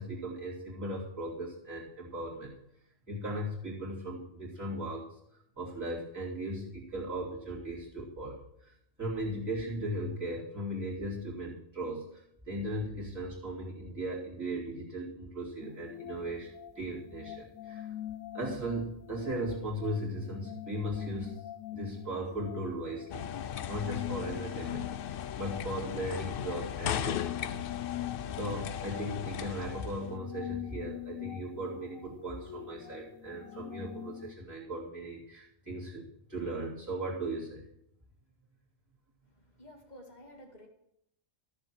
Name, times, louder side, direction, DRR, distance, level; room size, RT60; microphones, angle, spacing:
voice 1, 0.0-2.6 3.1-5.2 5.6-16.5 16.7-17.9 18.3-21.4 21.7-27.7 28.4-37.6, right 1 dB, 15° right, -8 dB, 2.9 m, -37 dB
sound 1, 15.6-34.3, left 14 dB, 85° left, 1.0 m, -44 dB
sound 2, 23.1-30.1, left 9 dB, 60° left, 0.6 m, -37 dB
voice 2, 39.2-40.7, equal, 35° left, 2 dB, 2.1 m, -52 dB
14.0 x 6.8 x 6.2 m, 0.76 s
omnidirectional pair, 1.4 m